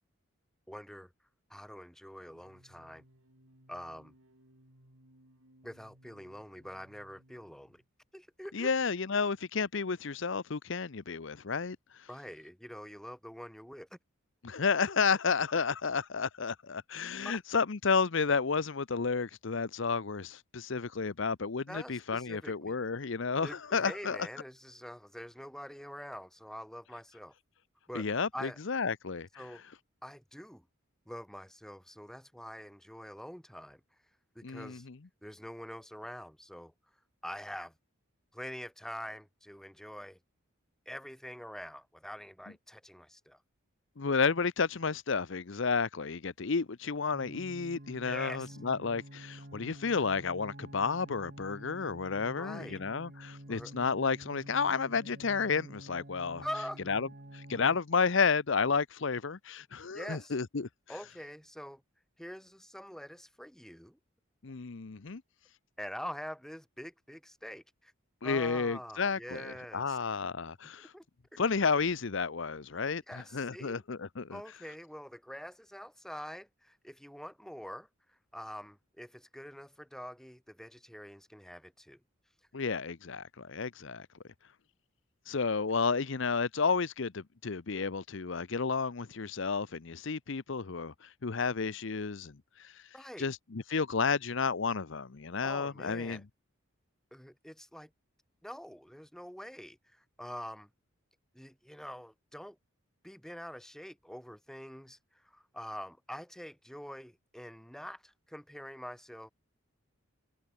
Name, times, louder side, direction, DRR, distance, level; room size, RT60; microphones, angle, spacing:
voice 1, 0.7-1.1 1.5-3.0 3.7-4.1 5.6-7.8 8.1-8.7 12.1-14.0 17.2-17.4 21.7-22.7 23.4-27.3 27.9-28.6 29.4-29.6 30.0-30.6 31.1-33.8 34.3-34.9 35.2-36.7 37.2-37.7 38.3-40.2 40.8-43.4 48.0-48.6 52.2-52.8 53.5-53.7 56.4-56.8 59.9-60.4 60.9-61.8 62.2-64.0 65.8-67.9 68.2-70.0 70.9-71.0 71.3-71.4 73.1-73.8 74.3-77.9 78.3-82.0 92.9-93.3 95.4-96.2 97.1-97.9 98.4-100.7 101.3-102.6 103.0-105.0 105.2-109.3, equal, ahead, 3.4 m, -45 dB
sound 1, 2.2-7.9, equal, 80° right, 7.3 m, -63 dB
voice 2, 8.5-11.8 14.4-24.2 27.9-29.4 34.4-35.0 44.0-56.4 56.9-57.1 57.3-60.7 64.4-65.2 68.2-70.9 71.4-74.4 82.5-84.1 85.3-92.7 93.2-96.2, left 5 dB, 60° left, 0.7 m, -31 dB
sound 2, 47.1-57.8, right 1 dB, 45° right, 2.5 m, -49 dB
head